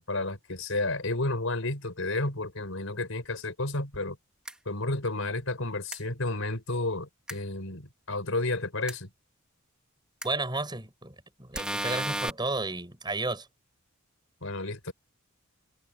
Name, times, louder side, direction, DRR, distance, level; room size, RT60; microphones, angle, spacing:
voice 1, 0.0-4.2 4.7-9.1 14.4-14.9, left 2 dB, 70° left, 4.6 m, -31 dB
sound 1, 4.4-4.5 5.9-6.0 7.3-7.4 8.9-9.0 10.2-10.3 11.5-12.3, right 1 dB, 5° right, 2.1 m, -32 dB
voice 2, 10.2-13.5, right 2 dB, 20° right, 6.7 m, -32 dB
head